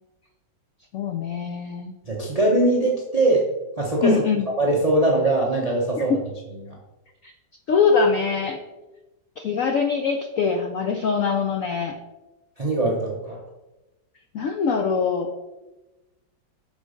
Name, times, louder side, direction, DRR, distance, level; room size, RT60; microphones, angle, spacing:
voice 1, 0.9-1.9 4.0-4.5 6.0-6.1 7.2-7.3 7.7-8.6 9.4-12.0 14.3-15.3, left 5 dB, 75° left, 5 dB, 0.7 m, -23 dB
voice 2, 2.1-3.5 3.8-4.2 4.6-6.2 6.6-6.8 12.6-13.4, right 2 dB, 50° right, -2 dB, 0.4 m, -21 dB
6.0 x 4.0 x 4.9 m, 1.1 s
omnidirectional pair, 2.0 m